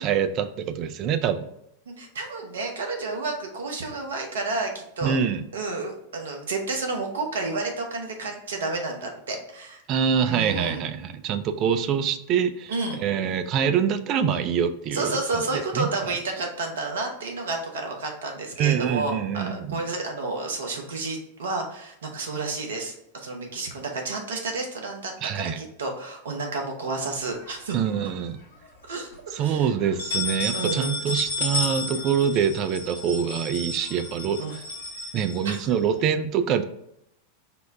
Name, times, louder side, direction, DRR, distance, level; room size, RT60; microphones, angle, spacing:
voice 1, 0.0-1.5 5.0-5.4 9.9-12.7 13.0-15.2 15.7-16.2 18.6-19.9 25.2-25.6 27.7-28.4 29.4-34.6 35.1-36.6, right 8 dB, 35° right, 9 dB, 0.3 m, -25 dB
voice 2, 1.9-5.2 5.5-9.8 10.2-10.8 12.7-13.0 14.9-27.8 28.9-29.7 30.5-31.0 34.4-34.6 35.4-35.6, right 3 dB, 65° right, 2 dB, 0.8 m, -31 dB
sound 1, 27.3-28.2 28.7-28.8 29.1-29.2 29.8-36.0, left 3 dB, 65° left, 0.8 m, -32 dB
4.2 x 2.1 x 3.4 m, 0.78 s
figure-of-eight pair, 90°, 0 cm